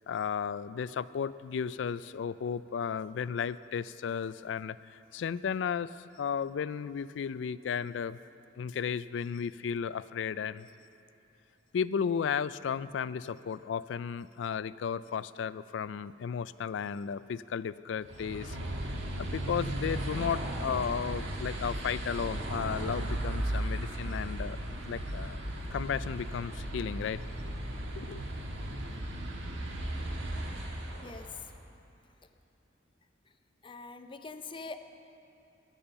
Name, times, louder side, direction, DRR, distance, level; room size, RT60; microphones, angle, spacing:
voice 1, 0.1-8.2 8.6-10.7 11.7-18.6 19.2-24.6 24.8-25.4 25.7-27.6 28.0-28.2, left 7 dB, 70° left, 17 dB, 0.3 m, -34 dB
sound 1, 18.0-31.5, right 1 dB, 80° right, 1.6 m, -36 dB
voice 2, 33.6-34.8, left 3 dB, 25° left, 8 dB, 0.6 m, -43 dB
17.5 x 7.1 x 6.9 m, 2.9 s
head